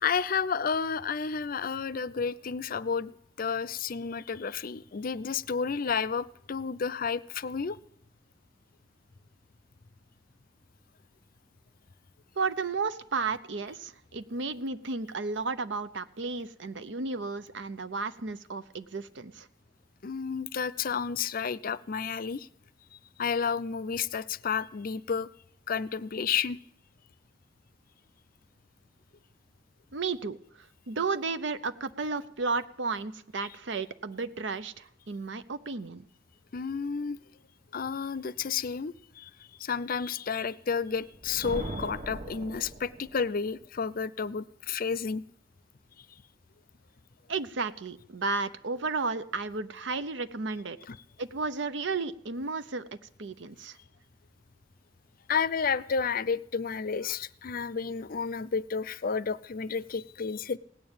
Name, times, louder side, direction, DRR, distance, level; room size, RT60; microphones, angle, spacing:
voice 1, 0.0-3.1 3.4-7.8 20.0-22.5 23.2-25.3 25.7-26.6 36.5-37.2 37.7-39.3 39.6-45.2 50.9-51.0 55.3-60.6, left 6 dB, 50° left, 18 dB, 0.5 m, -31 dB
voice 2, 12.4-19.5 29.9-36.1 47.3-50.8 51.2-53.8, right 4 dB, 75° right, 13 dB, 0.8 m, -33 dB
Thunder, 41.0-43.3, right 1 dB, 40° right, 1.3 m, -40 dB
17.5 x 9.2 x 8.8 m, 0.71 s
head